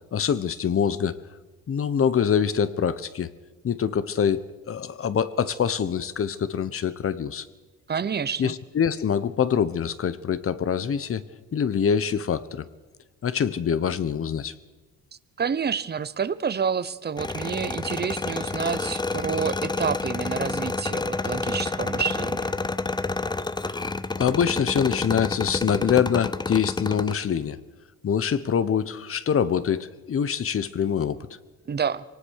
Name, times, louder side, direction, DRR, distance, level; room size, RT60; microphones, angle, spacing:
voice 1, 0.1-1.2 1.7-3.3 3.6-4.4 4.7-7.5 8.4-11.2 11.5-12.6 13.2-14.5 24.2-27.6 28.0-31.2, left 7 dB, 45° left, 15 dB, 1.1 m, -24 dB
voice 2, 7.9-8.5 15.4-22.5 31.7-32.0, right 6 dB, 35° right, 17 dB, 0.9 m, -28 dB
sound 1, 17.2-27.1, left 3 dB, 15° left, 0.7 m, -29 dB
23.5 x 18.5 x 6.6 m, 1.3 s
cardioid pair, 90°, 30 cm